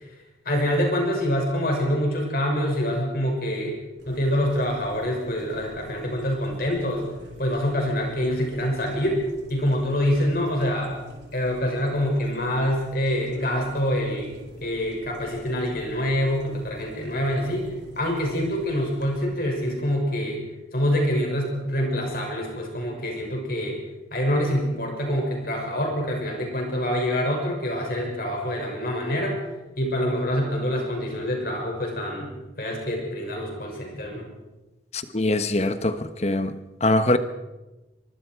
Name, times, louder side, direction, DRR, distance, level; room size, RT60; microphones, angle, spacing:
voice 1, 0.4-3.7 4.1-7.0 7.4-9.2 9.5-10.9 11.3-14.3 14.6-17.7 18.0-20.4 20.7-23.8 24.1-29.4 29.8-34.3, equal, 50° left, 6.4 m, -25 dB
sound 1, 4.0-19.2, right 1 dB, 70° right, 4.2 m, -46 dB
voice 2, 34.9-36.5 36.8-37.2, left 2 dB, 35° left, 1.2 m, -23 dB
24.0 x 24.0 x 4.7 m
head